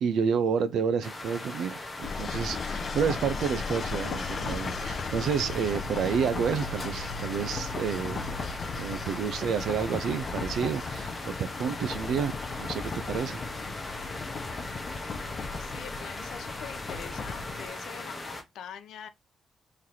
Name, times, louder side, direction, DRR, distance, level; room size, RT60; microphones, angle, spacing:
voice 1, 0.0-8.3 8.7-11.3 11.6-13.4, right 7 dB, 70° right, 0.5 m, -30 dB
sound 1, 1.0-18.4, left 2 dB, 15° left, 0.9 m, -39 dB
sound 2, 2.0-17.7, left 4 dB, 35° left, 0.5 m, -36 dB
voice 2, 15.6-19.1, left 8 dB, 80° left, 0.6 m, -44 dB
3.9 x 3.2 x 2.8 m
wide cardioid pair, 170°, 0 cm